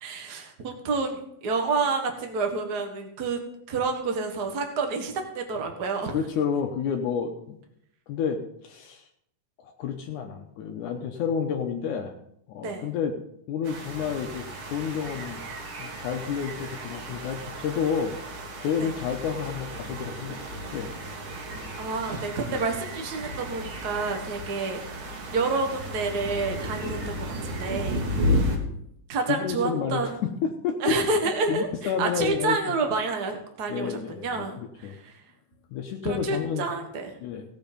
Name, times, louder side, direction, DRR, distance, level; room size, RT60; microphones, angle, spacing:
voice 1, 0.0-3.4 3.7-6.2 12.6-12.9 18.8-18.9 21.8-24.8 25.3-28.0 29.1-30.1 30.8-35.1 36.0-37.1, right 3 dB, 40° right, 4 dB, 1.6 m, -29 dB
voice 2, 6.1-7.6 8.1-9.0 9.6-12.1 12.5-13.1 13.5-14.4 14.7-15.4 15.8-18.1 18.6-20.4 20.7-20.9 22.5-22.6 28.2-28.4 29.3-30.9 31.5-32.8 33.7-35.0 35.7-36.6 37.2-37.4, left 7 dB, 80° left, 3 dB, 2.4 m, -30 dB
sound 1, 13.6-28.6, equal, 75° right, 3.4 m, -33 dB
16.5 x 7.2 x 5.2 m, 0.74 s
omnidirectional pair, 3.6 m